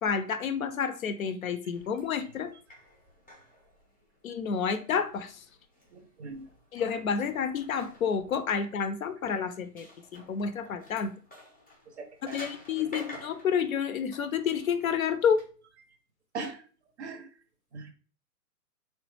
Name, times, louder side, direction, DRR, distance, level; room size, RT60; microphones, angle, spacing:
voice 1, 0.0-2.5 4.2-5.4 6.7-11.1 12.2-15.4, left 6 dB, 60° left, 9 dB, 0.5 m, -29 dB
sound 1, 1.7-15.4, left 1 dB, 10° left, 0.5 m, -51 dB
voice 2, 5.9-6.5 12.0-12.4 16.3-16.6 17.0-17.3 17.7-17.9, right 4 dB, 45° right, 7 dB, 0.6 m, -39 dB
3.1 x 2.2 x 3.0 m, 0.40 s
hypercardioid pair, 135°, 48 cm